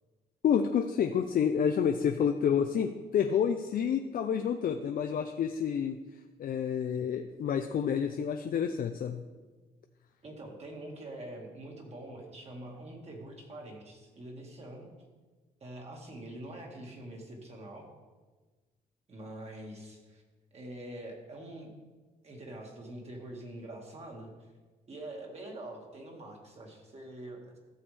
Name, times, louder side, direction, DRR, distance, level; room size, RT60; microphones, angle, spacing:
voice 1, 0.4-6.0 6.4-9.2, left 7 dB, 65° left, 6 dB, 0.5 m, -29 dB
voice 2, 10.2-14.9 15.6-17.9 19.1-20.2 20.5-21.7 22.2-24.3 24.9-27.6, right 1 dB, 40° right, 0 dB, 2.0 m, -45 dB
14.0 x 7.1 x 3.4 m, 1.3 s
cardioid pair, 120°, 16 cm